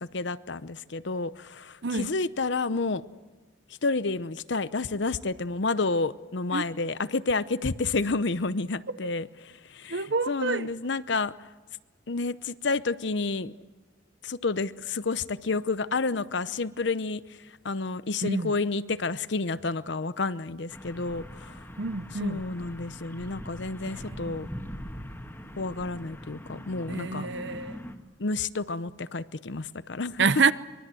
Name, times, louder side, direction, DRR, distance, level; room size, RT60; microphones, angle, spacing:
voice 1, 0.1-3.0 3.8-10.0 10.3-11.3 12.1-13.5 14.2-17.2 17.6-21.5 22.2-24.5 25.6-27.3 28.2-30.3, left 3 dB, 65° left, 0.8 m, -30 dB
voice 2, 1.8-2.1 6.5-6.6 9.0-9.1 9.9-10.7 18.2-18.6 21.8-22.4 23.9-24.1 24.4-24.5 26.9-27.8 30.2-30.5, right 4 dB, 60° right, 0.8 m, -27 dB
sound 1, 20.7-28.0, equal, 10° left, 1.7 m, -42 dB
24.5 x 22.5 x 7.7 m
head